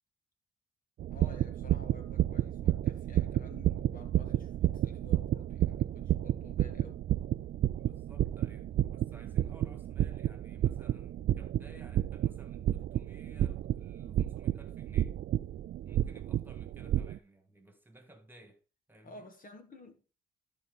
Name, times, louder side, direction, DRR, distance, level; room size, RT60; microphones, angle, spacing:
sound 1, 1.0-17.2, right 12 dB, 55° right, 0.4 m, -31 dB
voice 1, 1.1-7.1 19.0-20.0, left 1 dB, 45° left, 1.9 m, -52 dB
voice 2, 7.8-15.2 15.8-18.6 18.9-19.3, right 1 dB, 10° right, 2.2 m, -57 dB
14.0 x 4.8 x 4.0 m
cardioid pair, 90°, 20 cm